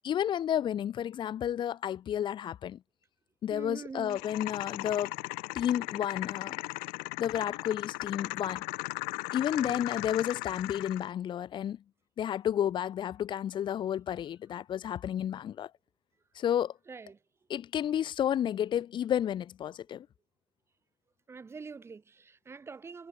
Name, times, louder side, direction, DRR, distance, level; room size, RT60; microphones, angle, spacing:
voice 1, 0.0-2.8 3.4-5.1 5.5-6.5 7.2-8.6 9.3-11.8 12.2-15.7 16.4-16.7 17.5-20.1, left 10 dB, 30° left, 1.2 m, -31 dB
voice 2, 3.5-4.2 9.5-9.9 16.9-17.2 21.3-23.1, right 5 dB, 15° right, 4.7 m, -45 dB
sound 1, 4.1-11.1, left 35 dB, 70° left, 0.6 m, -37 dB
cardioid pair, 155°, 16 cm